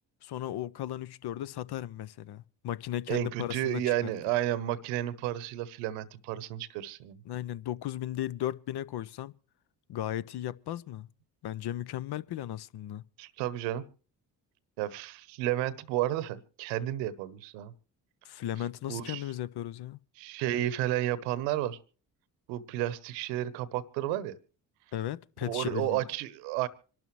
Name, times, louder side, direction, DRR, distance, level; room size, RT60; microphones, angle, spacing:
voice 1, 0.2-4.1 7.3-9.3 9.9-11.1 11.4-13.0 18.2-20.0 24.9-26.1, left 12 dB, 50° left, 0.7 m, -36 dB
voice 2, 3.1-7.2 13.2-13.8 14.8-17.7 18.9-19.2 20.2-21.8 22.5-24.4 25.4-26.7, right 13 dB, 80° right, 1.0 m, -32 dB
25.5 x 12.0 x 3.1 m
hypercardioid pair, 45°, 49 cm